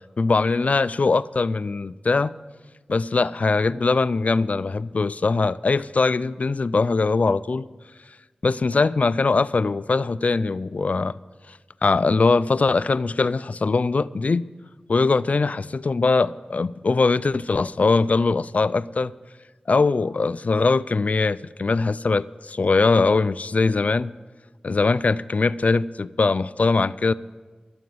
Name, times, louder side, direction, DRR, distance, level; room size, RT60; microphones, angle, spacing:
voice 1, 0.2-2.3 2.9-7.7 8.4-11.2 11.5-14.5 14.9-19.1 19.7-24.1 24.6-27.1, left 3 dB, 55° left, 0.4 m, -21 dB
13.0 x 7.8 x 7.8 m
cardioid pair, 45°, 3 cm